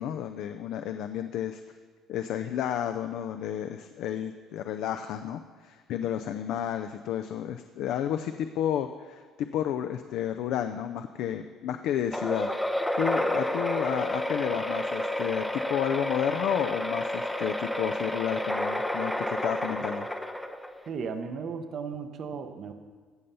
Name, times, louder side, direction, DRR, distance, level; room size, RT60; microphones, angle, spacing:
voice 1, 0.0-1.6 2.1-12.5 13.0-20.1, left 10 dB, 65° left, 8 dB, 0.4 m, -31 dB
sound 1, 12.1-20.9, left 1 dB, 5° left, 0.5 m, -30 dB
voice 2, 20.9-22.7, right 5 dB, 40° right, 7 dB, 0.7 m, -35 dB
16.5 x 6.8 x 5.6 m, 1.5 s
cardioid pair, 175°, 0 cm